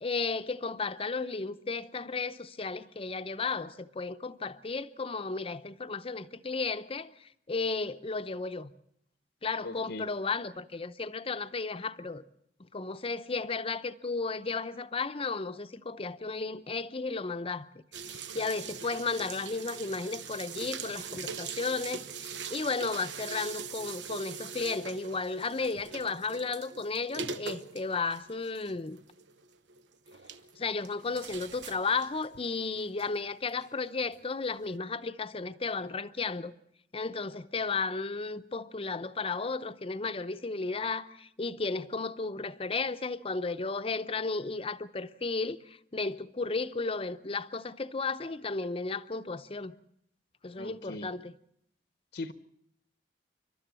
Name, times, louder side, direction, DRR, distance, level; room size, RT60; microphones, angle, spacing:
voice 1, 0.0-8.7 9.4-12.2 12.7-17.8 18.1-29.0 30.6-36.5 36.9-49.7 50.4-51.3, left 4 dB, 35° left, 0.7 m, -34 dB
voice 2, 9.6-10.1 50.6-51.1 52.1-52.3, left 2 dB, 70° left, 0.9 m, -39 dB
sound 1, 17.9-33.7 34.1-34.3 34.6-34.7, right 5 dB, 90° right, 1.0 m, -42 dB
29.5 x 12.5 x 7.5 m
head